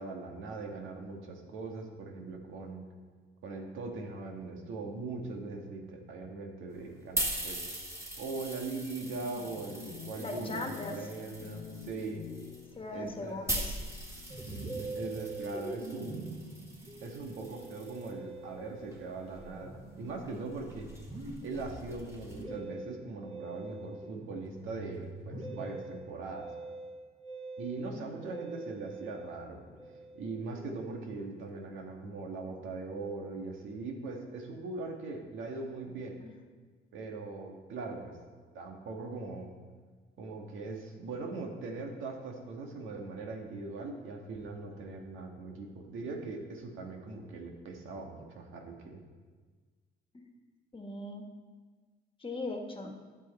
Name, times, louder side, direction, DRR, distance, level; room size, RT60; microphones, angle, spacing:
voice 1, 0.0-2.8 3.4-7.6 8.2-12.2 12.9-13.4 14.4-16.4 17.0-20.9 21.4-26.5 27.6-29.6 30.1-36.2 36.9-38.1 38.5-39.5 40.2-49.0, right 3 dB, 85° right, 1 dB, 1.6 m, -40 dB
sound 1, 6.7-18.1 18.9-22.4, right 1 dB, 15° right, 2.0 m, -41 dB
sound 2, 9.1-15.4, left 8 dB, 55° left, 0.8 m, -49 dB
voice 2, 10.1-11.0 12.7-13.7 27.9-28.2 36.2-36.3 50.1-50.3 50.7-51.3 52.2-52.9, left 2 dB, 25° left, 3 dB, 1.5 m, -39 dB
Musical instrument, 14.3-31.9, right 2 dB, 40° right, 2.9 m, -45 dB
11.5 x 7.7 x 4.2 m, 1.5 s
cardioid pair, 90°, 20 cm